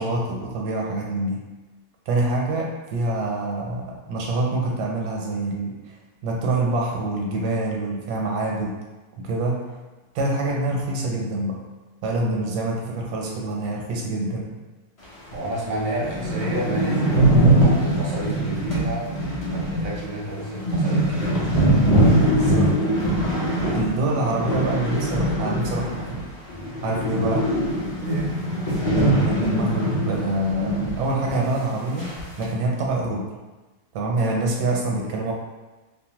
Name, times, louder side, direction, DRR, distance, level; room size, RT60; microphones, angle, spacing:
voice 1, 0.0-1.4 2.1-5.9 6.2-8.8 9.2-9.6 10.1-11.6 12.0-14.5 18.3-18.7 22.2-22.8 23.7-26.2 26.8-27.5 29.2-33.3 33.9-35.3, right 2 dB, 85° right, -2 dB, 1.2 m, -26 dB
sound 1, 15.3-15.4 15.7-26.2 26.5-31.0 31.3-31.4 32.0-32.4, right 1 dB, 50° left, 0.4 m, -22 dB
voice 2, 15.3-17.2 17.5-19.1 19.5-21.5 27.9-28.3, right 1 dB, 50° right, -5 dB, 0.6 m, -31 dB
2.8 x 2.1 x 2.9 m, 1.2 s
omnidirectional pair, 1.7 m